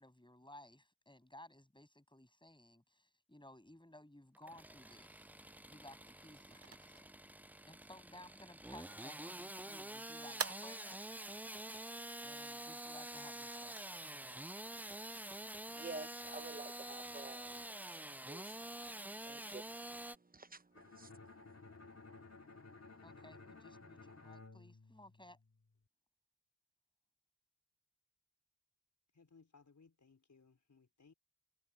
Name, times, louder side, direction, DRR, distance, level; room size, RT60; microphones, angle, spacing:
voice 1, 0.0-5.3 5.7-7.1 7.7-11.0 12.2-14.2 23.0-25.4, left 1 dB, 15° left, 7.8 m, -58 dB
Engine starting / Sawing, 4.3-20.2, right 1 dB, 5° right, 0.3 m, -48 dB
sound 1, 6.0-15.8, right 5 dB, 50° right, 0.7 m, -52 dB
voice 2, 15.7-18.0 18.3-18.6 19.0-21.3, right 3 dB, 30° right, 1.0 m, -51 dB
Bowed string instrument, 20.7-25.7, left 3 dB, 60° left, 2.7 m, -56 dB
voice 3, 29.1-31.1, left 4 dB, 80° left, 4.9 m, -65 dB
wide cardioid pair, 70°, 29 cm